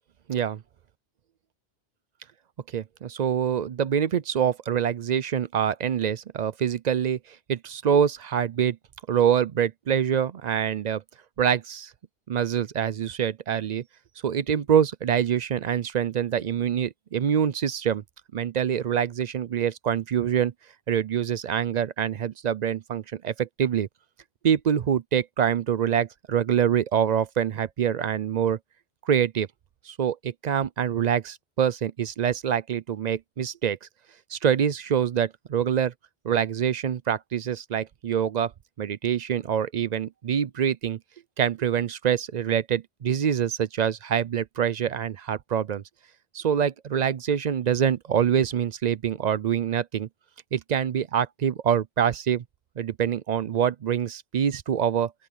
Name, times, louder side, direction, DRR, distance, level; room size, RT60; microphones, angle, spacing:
voice 1, 0.3-0.6 2.7-7.2 7.5-8.8 9.1-11.0 11.4-11.9 12.3-13.8 14.2-18.0 18.3-20.5 20.9-23.9 24.4-28.6 29.1-29.5 29.9-33.8 34.3-35.9 36.2-38.5 38.8-41.0 41.4-45.8 46.3-50.1 50.5-52.4 52.8-55.1, right 8 dB, 50° right, 0.5 m, -25 dB
open air
omnidirectional pair, 1.1 m